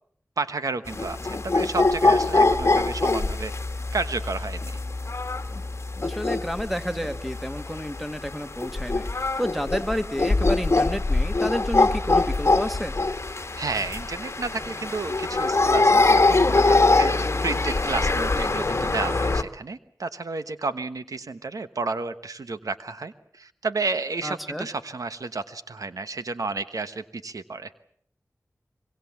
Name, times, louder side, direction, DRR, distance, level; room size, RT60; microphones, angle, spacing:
voice 1, 0.4-3.5 3.9-4.8 13.5-27.7, right 3 dB, 85° right, 11 dB, 1.2 m, -31 dB
sound 1, 0.9-19.4, left 3 dB, 50° left, 1.4 m, -23 dB
voice 2, 6.0-13.0 24.2-24.7, equal, ahead, 7 dB, 2.0 m, -30 dB
25.5 x 23.0 x 7.3 m, 0.64 s
wide cardioid pair, 55°, 6 cm